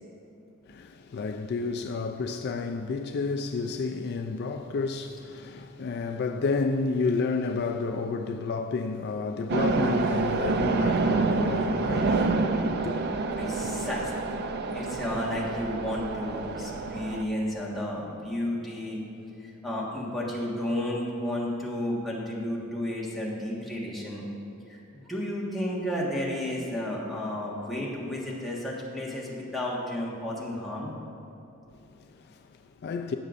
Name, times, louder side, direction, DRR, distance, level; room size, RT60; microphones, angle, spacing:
voice 1, 0.7-12.9 31.7-33.2, left 4 dB, 50° left, 0.3 m, -31 dB
sound 1, 9.5-17.2, right 3 dB, 50° right, 0.4 m, -27 dB
voice 2, 13.4-14.1 14.7-19.0 19.4-24.2 24.7-30.9, left 1 dB, ahead, 1.4 m, -32 dB
16.0 x 6.6 x 2.5 m
head